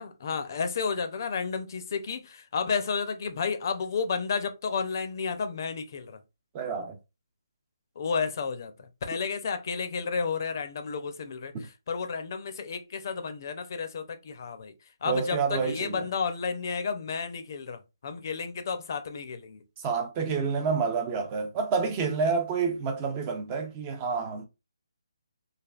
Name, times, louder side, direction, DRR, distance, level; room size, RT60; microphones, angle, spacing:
voice 1, 0.0-6.2 8.0-14.7 15.0-19.6, left 5 dB, 45° left, 0.5 m, -32 dB
voice 2, 6.5-7.0 11.5-11.7 15.1-16.1 19.8-24.5, right 5 dB, 20° right, 0.5 m, -29 dB
3.3 x 2.3 x 2.3 m
hypercardioid pair, 160°, 3 cm